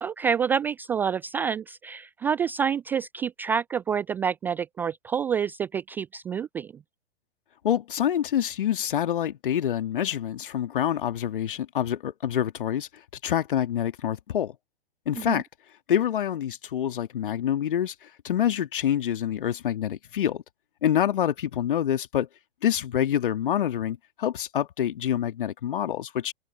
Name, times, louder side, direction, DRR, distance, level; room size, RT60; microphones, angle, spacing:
voice 1, 0.0-6.7 15.3-15.4, right 7 dB, 5° right, 0.4 m, -28 dB
voice 2, 7.6-12.9 13.2-14.5 15.1-15.4 15.9-20.4 20.8-22.3 22.6-26.3, left 10 dB, 55° left, 2.4 m, -26 dB
open air
figure-of-eight pair, 115°, 32 cm